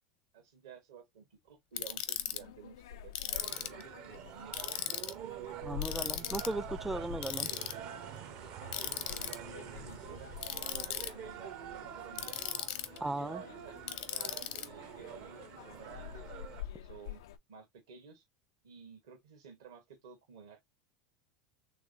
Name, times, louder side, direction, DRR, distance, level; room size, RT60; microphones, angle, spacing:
voice 1, 0.3-2.8 3.0-4.8 8.7-12.4 12.9-17.2 17.5-18.2 18.6-20.6, right 6 dB, 80° right, 1.1 m, -53 dB
sound 1, 1.7-17.4, left 11 dB, 75° left, 0.3 m, -49 dB
Ratchet pawl, 1.8-2.4 3.1-3.8 4.5-5.1 5.8-6.5 7.2-7.7 8.7-9.4 10.4-11.1 12.2-13.0 13.9-14.7, left 11 dB, 55° left, 0.7 m, -37 dB
sound 2, 3.3-16.6, right 10 dB, 55° right, 0.6 m, -47 dB
voice 2, 5.6-7.5 13.0-13.4, right 2 dB, 10° right, 0.4 m, -37 dB
3.2 x 3.2 x 2.6 m
hypercardioid pair, 90°, 2 cm